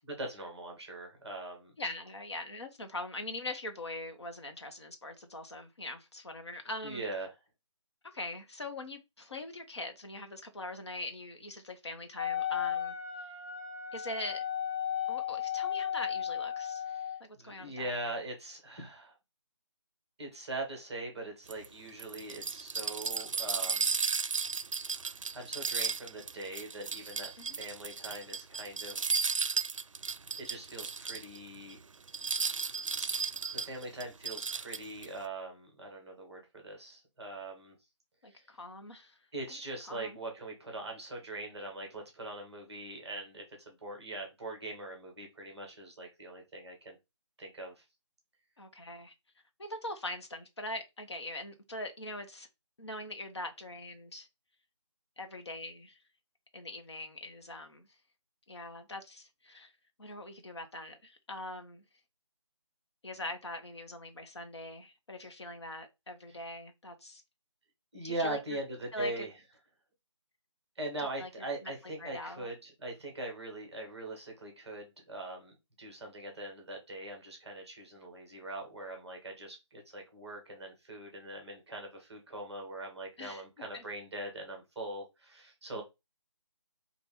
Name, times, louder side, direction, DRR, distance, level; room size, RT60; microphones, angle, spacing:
voice 1, 0.2-1.7 6.8-7.3 16.9-19.1 20.2-24.0 25.3-29.0 30.4-31.8 33.0-33.1 33.5-37.7 38.3-38.4 39.3-47.0 47.4-47.8 67.9-69.3 70.7-85.8, right 2 dB, ahead, 1.2 m, -41 dB
voice 2, 1.8-7.0 8.0-12.9 13.9-14.4 15.1-16.8 17.2-17.9 27.4-27.6 38.2-39.2 39.9-40.2 48.6-49.1 49.6-52.5 52.8-54.3 55.2-56.0 56.5-57.9 58.5-59.7 60.0-61.8 63.0-67.2 68.0-68.6 68.9-69.3 71.2-71.3 71.6-72.5 83.2-83.4 83.7-83.8, left 1 dB, 60° left, 1.1 m, -42 dB
Wind instrument woodwind instrument, 12.2-17.2, left 9 dB, 20° left, 0.9 m, -35 dB
sound 1, 21.5-31.4 31.7-31.8 32.1-35.1, right 5 dB, 90° right, 0.4 m, -34 dB
4.1 x 2.5 x 3.5 m
figure-of-eight pair, 170°, 16 cm